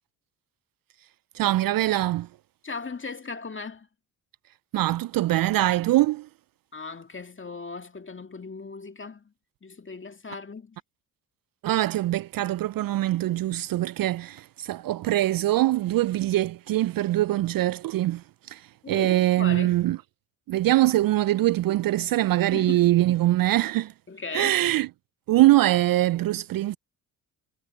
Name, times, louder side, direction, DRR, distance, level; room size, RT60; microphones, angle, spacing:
voice 1, 1.3-2.3 4.7-6.3 11.6-20.0 20.5-23.9 24.3-24.9 25.3-26.8, right 15 dB, 50° right, 0.5 m, -23 dB
voice 2, 2.6-3.9 6.7-9.3 9.6-10.8 18.8-19.8 22.5-22.9 24.1-24.6, left 4 dB, 25° left, 2.2 m, -37 dB
hypercardioid pair, 55°, 45 cm